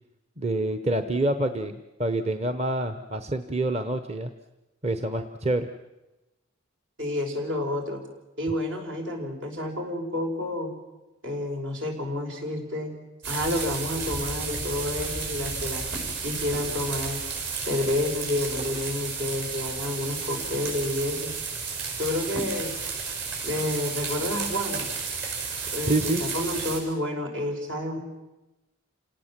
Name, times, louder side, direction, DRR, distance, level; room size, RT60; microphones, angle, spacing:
voice 1, 0.4-4.3 4.8-5.7 25.9-26.2, right 1 dB, 35° right, 9 dB, 0.9 m, -27 dB
voice 2, 7.0-8.0 8.4-10.7 11.2-13.0 13.3-15.9 16.2-17.2 17.7-21.3 22.0-22.7 23.4-24.9 25.7-25.9 26.2-28.0, left 1 dB, 70° right, 2 dB, 5.2 m, -29 dB
sound 1, 13.2-26.8, right 5 dB, 55° right, 6.6 m, -32 dB
28.5 x 18.0 x 7.5 m, 1.0 s
head